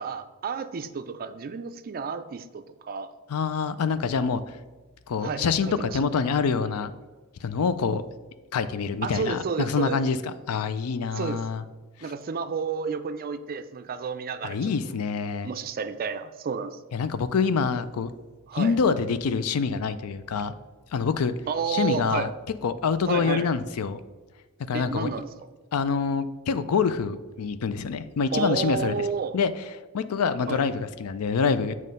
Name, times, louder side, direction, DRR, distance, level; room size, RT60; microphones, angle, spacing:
voice 1, 0.0-3.1 5.2-6.0 9.0-10.0 11.1-11.7 12.0-14.7 15.4-16.8 18.5-18.8 21.5-22.3 23.1-23.5 24.7-25.3 28.3-29.4 30.5-30.6, right 5 dB, 40° right, 11 dB, 0.4 m, -31 dB
voice 2, 3.3-4.4 5.1-6.9 7.4-8.0 8.5-10.2 10.5-11.6 14.4-15.5 16.9-18.1 18.5-20.5 20.9-21.3 21.7-22.3 22.6-24.0 24.7-25.1 25.7-28.9 29.3-29.5 29.9-31.7, left 5 dB, 75° left, 13 dB, 0.4 m, -26 dB
7.4 x 3.2 x 5.3 m, 1.3 s
head